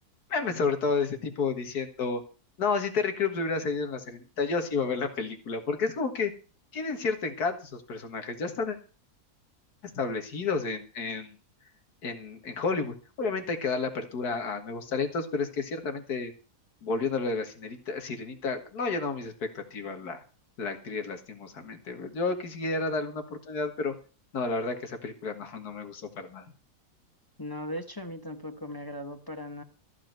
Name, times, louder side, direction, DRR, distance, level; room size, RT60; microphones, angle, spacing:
voice 1, 0.3-2.2 2.6-6.3 6.7-8.8 10.0-11.4 12.0-16.3 16.8-20.2 20.6-23.9 24.3-26.5, left 4 dB, 80° left, 7 dB, 2.2 m, -31 dB
voice 2, 27.4-29.6, left 1 dB, 15° left, 6 dB, 0.9 m, -38 dB
14.0 x 5.0 x 9.1 m, 0.36 s
omnidirectional pair, 1.6 m